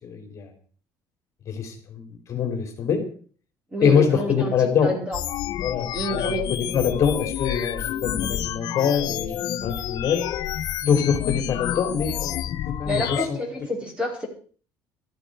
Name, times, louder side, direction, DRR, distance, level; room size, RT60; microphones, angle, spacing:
voice 1, 0.0-0.5 1.5-3.0 3.8-4.9 5.6-10.3 10.8-12.4 12.7-13.4, left 7 dB, 40° left, 4 dB, 3.5 m, -24 dB
voice 2, 3.7-4.5 4.8-5.2 5.9-6.8 12.8-14.3, equal, 15° right, 2 dB, 4.7 m, -29 dB
sound 1, 5.1-13.3, left 12 dB, 65° left, 1.3 m, -29 dB
15.0 x 13.0 x 5.0 m, 0.43 s
cardioid pair, 140°, 8 cm